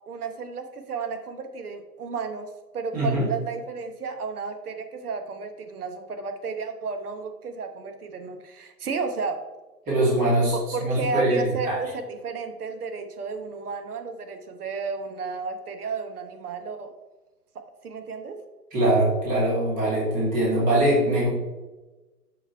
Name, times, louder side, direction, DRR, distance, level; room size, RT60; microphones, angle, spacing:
voice 1, 0.1-2.5 2.7-9.4 10.5-11.7 12.2-16.9 17.8-18.4, right 5 dB, 65° right, 6 dB, 1.3 m, -32 dB
voice 2, 2.9-3.2 9.9-11.8 18.7-21.3, right 1 dB, 15° right, -7 dB, 2.3 m, -22 dB
6.5 x 5.1 x 4.6 m, 1.1 s
hypercardioid pair, 145°, 48 cm